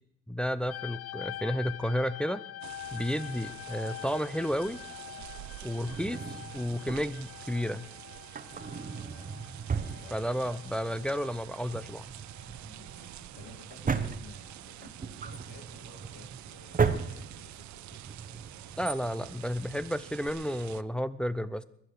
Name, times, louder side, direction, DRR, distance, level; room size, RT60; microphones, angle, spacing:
voice 1, 0.3-2.4 2.9-4.8 5.6-6.2 6.5-7.9 10.1-12.1 18.8-21.6, equal, 5° left, 12 dB, 0.7 m, -32 dB
sound 1, 0.7-13.7 13.9-14.7 15.4-15.7, left 13 dB, 55° left, 0.5 m, -46 dB
sound 2, 2.6-20.8, right 15 dB, 70° right, 0.5 m, -48 dB
Drawer open or close, 5.9-7.4 8.2-10.7 11.0-11.1 11.6-20.3, right 5 dB, 25° right, 1.1 m, -36 dB
voice 2, 8.8-9.5 10.0-10.3 12.4-18.5, left 6 dB, 80° left, 3 dB, 1.8 m, -56 dB
22.0 x 7.8 x 6.6 m, 0.73 s
cardioid pair, 90°, 30 cm